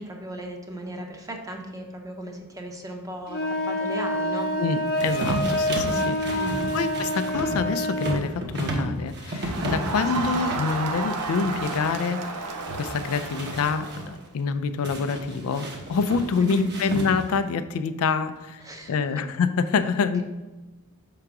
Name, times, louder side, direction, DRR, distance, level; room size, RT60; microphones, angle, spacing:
voice 1, 0.0-4.5 6.3-6.7 10.2-10.3 16.4-16.7 18.6-18.9, right 1 dB, 15° right, 2 dB, 0.8 m, -36 dB
sound 1, 3.3-8.2, equal, 45° left, 0.8 m, -27 dB
voice 2, 4.6-6.5 6.7-18.6 18.9-20.2, left 5 dB, 70° left, 11 dB, 0.4 m, -26 dB
sound 2, 5.0-12.1 12.5-14.1 14.8-17.4, right 1 dB, 50° right, 1.0 m, -33 dB
Crowd, 9.4-14.2, right 3 dB, 80° right, 0.6 m, -32 dB
5.8 x 3.8 x 4.7 m, 1.2 s
head